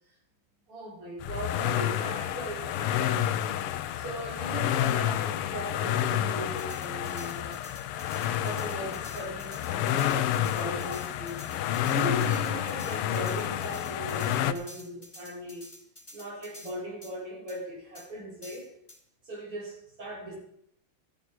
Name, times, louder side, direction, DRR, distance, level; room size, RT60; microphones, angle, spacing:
voice 1, 0.7-3.4 4.0-7.6 8.4-11.4 11.9-15.7 16.1-18.7 19.2-20.4, right 1 dB, 85° right, -3 dB, 5.6 m, -39 dB
sound 1, 1.2-14.5, left 11 dB, 85° left, 1.7 m, -29 dB
sound 2, 6.6-16.8 17.0-17.1 17.5-17.6 18.0-18.1 18.4-19.0, left 1 dB, 10° left, 3.0 m, -49 dB
14.0 x 12.5 x 4.6 m, 0.71 s
omnidirectional pair, 2.4 m